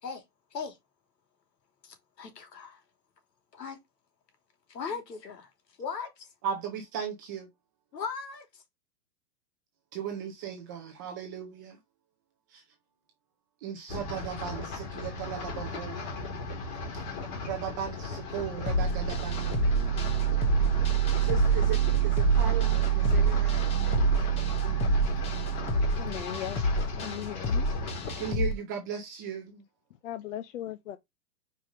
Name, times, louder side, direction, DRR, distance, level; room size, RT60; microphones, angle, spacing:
voice 1, 1.8-2.8 3.5-3.8 4.7-5.5 5.8-6.3 7.9-8.6, left 6 dB, 80° left, 3.3 m, -38 dB
voice 2, 6.4-7.5 9.9-11.8 12.5-12.6 13.6-16.0 17.4-19.6 21.2-23.6 28.2-29.6, right 8 dB, 15° right, 0.4 m, -37 dB
sound 1, 13.9-28.3, left 3 dB, 35° left, 3.5 m, -37 dB
sound 2, 18.5-26.3, right 13 dB, 50° right, 0.9 m, -28 dB
sound 3, 18.7-28.5, left 2 dB, 15° left, 0.7 m, -30 dB
voice 3, 26.0-26.6 27.0-27.7 30.0-31.0, left 12 dB, 50° left, 0.9 m, -37 dB
5.1 x 4.8 x 5.1 m
hypercardioid pair, 150°, 49 cm